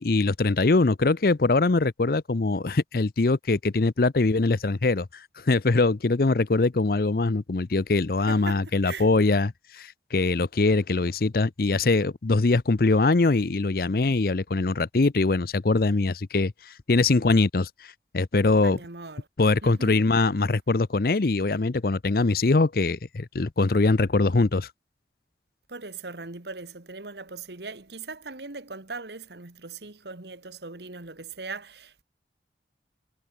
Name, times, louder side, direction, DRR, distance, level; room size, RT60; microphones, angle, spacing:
voice 1, 0.0-5.1 5.5-17.7 18.1-18.8 19.4-24.7, left 3 dB, 55° left, 0.6 m, -22 dB
voice 2, 8.3-9.1 18.6-19.3 19.6-20.0 25.7-32.0, right 3 dB, 75° right, 1.8 m, -39 dB
head